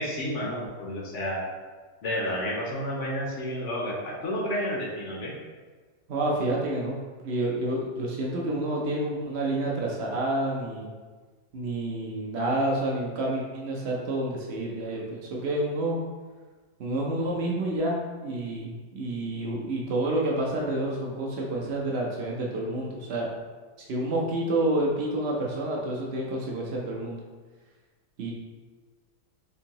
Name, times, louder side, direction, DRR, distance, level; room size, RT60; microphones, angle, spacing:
voice 1, 0.0-1.4 2.0-5.4, equal, 65° left, -3 dB, 0.7 m, -31 dB
voice 2, 6.1-7.0 7.2-10.9 11.5-16.0 16.8-23.3 23.8-27.2 28.2-28.3, right 1 dB, 85° right, -2 dB, 0.5 m, -29 dB
4.4 x 2.7 x 2.8 m, 1.4 s
omnidirectional pair, 1.8 m